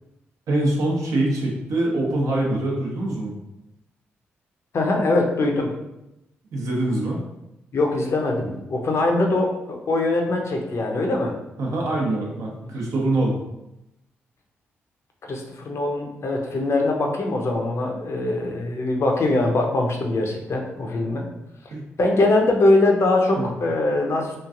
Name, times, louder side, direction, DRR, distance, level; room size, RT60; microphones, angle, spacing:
voice 1, 0.5-3.3 6.5-7.2 11.6-13.3 21.7-21.8 23.4-23.5, right 1 dB, 65° right, -2 dB, 0.8 m, -24 dB
voice 2, 4.7-5.7 7.7-11.3 15.3-21.2 22.0-24.4, left 2 dB, 50° left, 2 dB, 0.6 m, -22 dB
3.0 x 2.4 x 2.4 m, 0.88 s
hypercardioid pair, 40°, 6 cm